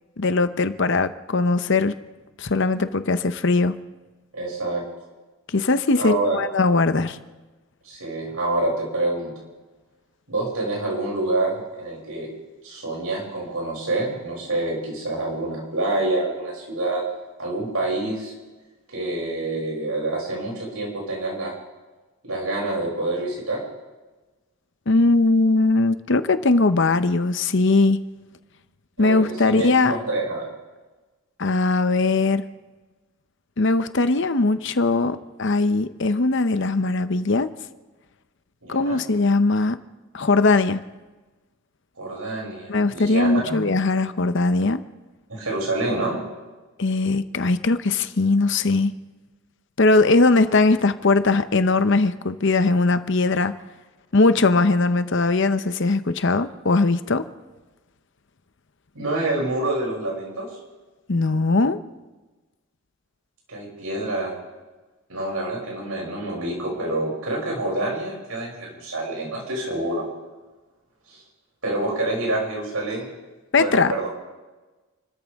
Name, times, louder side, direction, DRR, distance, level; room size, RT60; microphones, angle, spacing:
voice 1, 0.2-1.9 2.4-3.8 5.5-7.2 24.9-28.0 29.0-30.0 31.4-32.4 33.6-37.5 38.7-39.8 40.1-40.8 42.7-44.8 46.8-48.9 49.8-53.5 54.1-57.3 61.1-61.8 73.5-74.1, left 3 dB, 55° left, 11 dB, 0.8 m, -20 dB
voice 2, 4.3-4.8 6.0-6.4 7.8-9.3 10.3-12.3 12.6-17.0 17.4-18.3 18.9-21.5 22.2-23.6 29.0-30.5 38.6-39.0 42.0-43.6 45.3-46.2 58.9-60.5 63.5-64.3 65.1-70.0 71.1-71.2 71.6-73.1 73.5-74.1, right 2 dB, 85° right, -2 dB, 6.8 m, -27 dB
29.0 x 13.5 x 3.6 m, 1.2 s
head